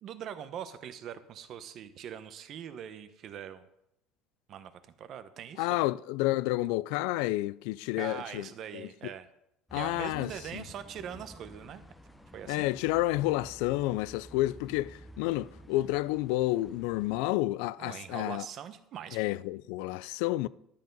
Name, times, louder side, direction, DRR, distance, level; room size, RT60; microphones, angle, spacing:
voice 1, 0.0-3.7 4.5-4.7 5.0-5.9 8.0-9.3 9.7-11.8 12.3-12.7 17.8-19.4, right 9 dB, 35° right, 0.8 m, -42 dB
voice 2, 5.6-8.5 8.7-9.1 9.7-10.6 12.5-18.5 19.1-20.5, left 17 dB, 80° left, 0.3 m, -30 dB
sound 1, 9.7-17.2, equal, 5° left, 0.7 m, -52 dB
12.0 x 7.8 x 5.3 m
cardioid pair, 175°, 0 cm